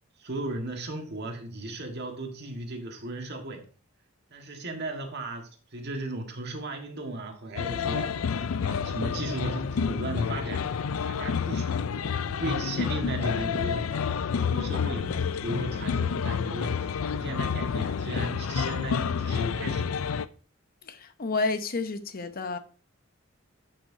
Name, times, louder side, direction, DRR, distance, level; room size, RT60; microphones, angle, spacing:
voice 1, 0.2-3.7 4.3-8.2 8.6-11.7 12.2-14.0 14.5-19.9, right 2 dB, 55° right, 1.6 m, -36 dB
sound 1, 7.6-20.3, left 6 dB, 85° left, 0.4 m, -29 dB
voice 2, 20.8-22.6, left 3 dB, 45° left, 0.8 m, -30 dB
12.0 x 6.0 x 2.7 m
head